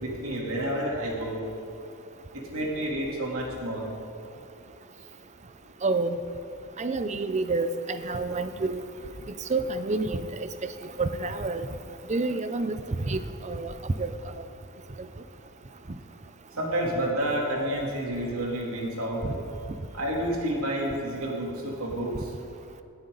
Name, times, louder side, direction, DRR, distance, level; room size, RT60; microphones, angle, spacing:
voice 1, 0.0-1.4 2.5-3.8 16.6-19.2 19.9-22.1, right 1 dB, 80° right, -2 dB, 3.3 m, -29 dB
voice 2, 5.8-6.2 6.8-8.8 9.5-10.5 11.0-11.7 12.1-12.8 13.1-13.7 14.0-14.1, right 3 dB, 30° right, 11 dB, 0.6 m, -28 dB
20.0 x 14.0 x 4.0 m, 2.7 s
head